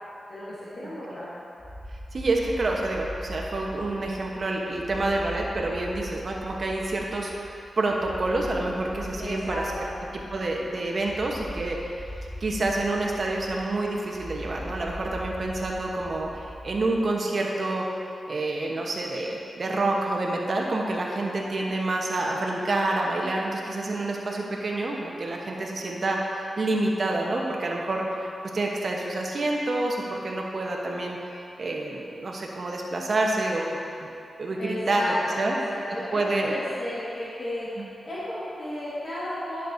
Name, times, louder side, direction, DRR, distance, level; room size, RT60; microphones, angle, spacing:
voice 1, 0.3-1.3 9.2-9.9 34.6-37.7 38.0-39.7, left 1 dB, 55° left, -10 dB, 1.8 m, -33 dB
sound 1, 1.6-17.1, left 1 dB, ahead, 1.4 m, -41 dB
voice 2, 2.1-9.6 10.3-12.0 12.4-17.9 18.3-31.2 31.6-34.1 34.4-35.6 36.1-36.5 37.8-37.9, right 2 dB, 60° right, -1 dB, 1.0 m, -28 dB
10.0 x 6.7 x 2.7 m, 2.6 s
cardioid pair, 55°, 0 cm